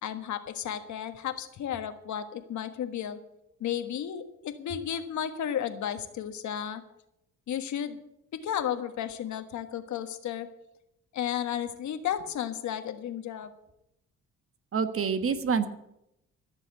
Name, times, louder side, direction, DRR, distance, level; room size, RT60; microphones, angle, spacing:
voice 1, 0.0-3.2 3.6-6.8 7.5-8.0 8.3-10.5 11.1-13.5, left 9 dB, 70° left, 9 dB, 1.5 m, -33 dB
voice 2, 14.7-15.7, right 6 dB, 45° right, 10 dB, 1.4 m, -27 dB
15.0 x 7.0 x 8.2 m, 0.83 s
cardioid pair, 90°, 30 cm